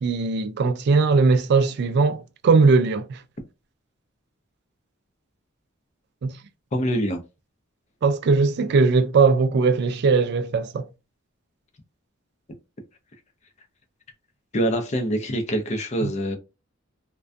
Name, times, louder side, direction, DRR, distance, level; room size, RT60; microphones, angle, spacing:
voice 1, 0.0-3.2 6.2-6.3 8.0-10.9 16.0-16.1, right 4 dB, 55° right, 0.3 m, -19 dB
voice 2, 6.7-7.2 14.5-16.4, equal, 35° left, 0.5 m, -24 dB
2.2 x 2.2 x 2.5 m
head